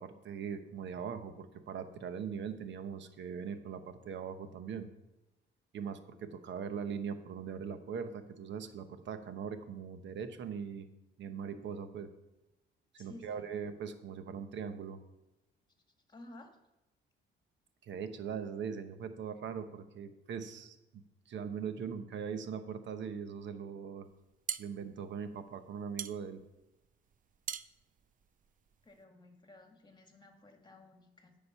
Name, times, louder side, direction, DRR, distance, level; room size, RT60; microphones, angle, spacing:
voice 1, 0.0-4.9 5.7-10.9 11.2-12.1 12.9-15.0 17.8-21.0 21.3-24.1 24.6-26.4, right 7 dB, 65° right, 9 dB, 1.1 m, -41 dB
voice 2, 13.0-13.5 16.1-16.5 28.8-31.4, left 2 dB, 20° left, 4 dB, 1.8 m, -54 dB
sound 1, 24.1-29.0, right 8 dB, 45° right, 0.5 m, -44 dB
9.6 x 5.3 x 7.0 m, 0.97 s
cardioid pair, 90°, 20 cm